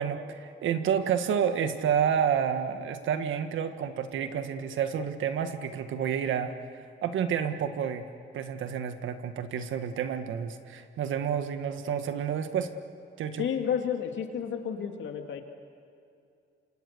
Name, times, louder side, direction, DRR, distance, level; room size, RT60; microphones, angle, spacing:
voice 1, 0.0-8.1 8.3-12.7 13.2-13.5, right 8 dB, 75° right, 9 dB, 1.6 m, -29 dB
voice 2, 13.4-15.4, left 8 dB, 70° left, 4 dB, 2.6 m, -31 dB
28.0 x 26.0 x 6.8 m, 2.5 s
cardioid pair, 90°, 20 cm